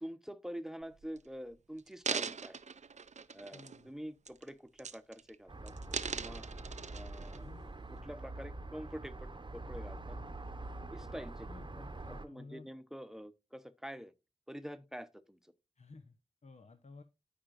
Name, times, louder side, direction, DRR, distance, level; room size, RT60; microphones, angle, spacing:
voice 1, 0.0-2.6 3.3-5.7 6.1-6.4 6.9-7.5 7.9-10.2 10.9-11.5 12.1-14.1 14.5-15.4, equal, 5° right, 0.8 m, -46 dB
sound 1, 0.8-1.2 1.8-3.9 4.3-4.5 4.8-5.4 5.7-7.4 8.0-8.1, right 6 dB, 80° right, 0.4 m, -40 dB
voice 2, 3.5-3.9 7.3-7.6 11.5-12.7 15.8-16.2 16.4-17.0, left 3 dB, 70° left, 0.8 m, -53 dB
sound 2, 5.5-12.3, right 2 dB, 40° right, 0.8 m, -45 dB
13.5 x 5.0 x 2.5 m
wide cardioid pair, 65°, 12 cm